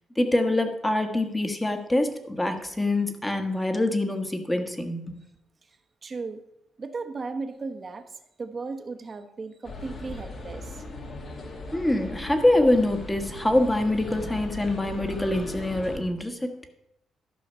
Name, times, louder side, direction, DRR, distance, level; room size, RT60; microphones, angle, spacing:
voice 1, 0.2-5.2 11.7-16.5, left 1 dB, 10° left, 6 dB, 1.4 m, -25 dB
voice 2, 6.0-6.4 6.8-10.8, right 4 dB, 35° right, 7 dB, 1.1 m, -36 dB
sound 1, 9.6-16.0, left 2 dB, 50° left, 1.9 m, -38 dB
12.0 x 5.7 x 5.6 m, 0.81 s
cardioid pair, 90°, 0 cm